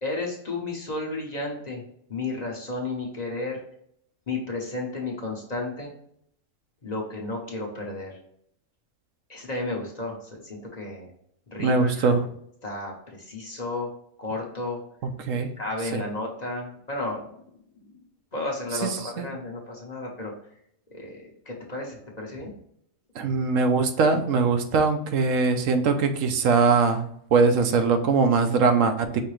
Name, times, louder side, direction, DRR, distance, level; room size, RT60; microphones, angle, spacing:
voice 1, 0.0-1.8 2.1-3.6 4.3-5.9 6.8-8.2 9.3-11.1 11.5-12.1 12.6-13.9 14.2-14.8 15.3-17.2 17.9-18.0 18.3-20.3 20.9-22.5, left 2 dB, 35° left, -1 dB, 0.9 m, -33 dB
voice 2, 11.6-12.3 15.0-15.5 15.9-16.0 18.8-18.9 19.2-19.3 23.2-27.0 27.3-29.1, right 4 dB, 85° right, 7 dB, 1.1 m, -21 dB
5.5 x 2.9 x 3.1 m, 0.69 s
omnidirectional pair, 1.3 m